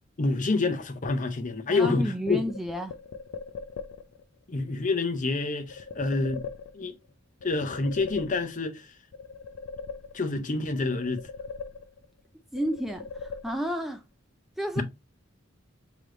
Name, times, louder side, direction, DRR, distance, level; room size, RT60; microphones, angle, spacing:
voice 1, 0.2-2.4 4.5-6.4 6.7-7.0 7.4-8.8 10.1-11.2 14.8-14.9, left 3 dB, 40° left, 0.7 m, -27 dB
voice 2, 1.7-3.0 12.5-14.0 14.6-14.8, equal, ahead, 0.3 m, -31 dB
sound 1, 2.3-4.2 5.7-7.1 7.4-8.8 9.1-10.5 10.8-12.2 12.5-13.9, left 5 dB, 80° left, 0.5 m, -41 dB
3.3 x 3.0 x 3.7 m
head